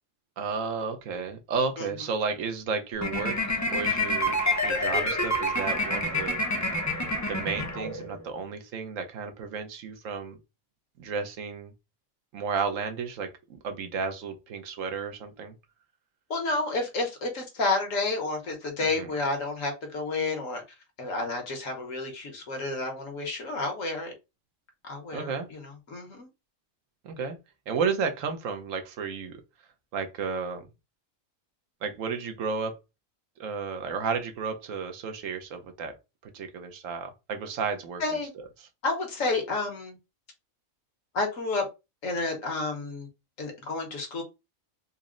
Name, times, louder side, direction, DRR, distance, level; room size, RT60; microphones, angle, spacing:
voice 1, 0.4-6.4 7.3-10.4 11.0-11.7 12.3-13.3 13.6-15.5 18.8-19.1 25.1-25.5 27.0-27.4 27.7-29.3 29.9-30.7 31.8-32.8 33.4-35.9 36.3-38.0, right 5 dB, 80° right, 1.1 m, -32 dB
sound 1, 3.0-8.2, left 1 dB, 25° left, 0.3 m, -28 dB
voice 2, 16.3-20.6 21.0-24.1 24.8-26.3 38.0-38.3 38.8-40.0 41.1-41.6 42.0-43.1 43.4-44.2, left 3 dB, 75° left, 1.5 m, -30 dB
4.1 x 2.0 x 3.7 m
omnidirectional pair, 1.4 m